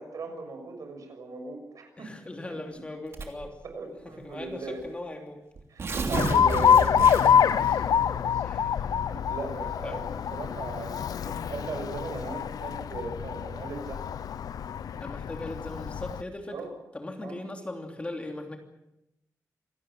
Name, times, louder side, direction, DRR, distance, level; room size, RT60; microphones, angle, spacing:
voice 1, 0.0-2.1 3.6-4.8 5.7-8.4 8.8-14.0 16.5-16.7 17.2-17.4, right 3 dB, 65° right, 5 dB, 6.4 m, -38 dB
voice 2, 2.0-3.6 4.0-5.4 5.9-6.2 6.5-6.6 7.5-7.9 8.4-8.9 9.8-10.0 15.0-16.6 16.9-18.6, left 2 dB, 20° left, 3 dB, 3.0 m, -39 dB
Tearing, 3.1-3.5 4.4-4.5 4.8-4.9 5.6-7.5, right 3 dB, 45° right, 3.1 m, -31 dB
Alarm, 6.1-16.2, left 8 dB, 90° left, 0.8 m, -26 dB
26.5 x 18.5 x 7.5 m, 0.86 s
wide cardioid pair, 175°, 6 cm